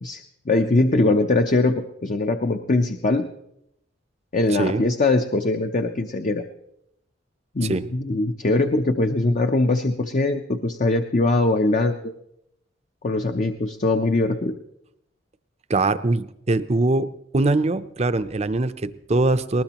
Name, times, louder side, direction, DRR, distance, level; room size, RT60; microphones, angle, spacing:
voice 1, 0.0-3.3 4.3-6.4 7.5-12.1 13.0-14.5, left 2 dB, 40° left, 6 dB, 0.7 m, -22 dB
voice 2, 4.5-4.8 7.6-7.8 15.7-17.1 17.3-19.6, right 2 dB, 35° right, 12 dB, 0.6 m, -22 dB
20.0 x 19.5 x 3.0 m, 0.80 s
head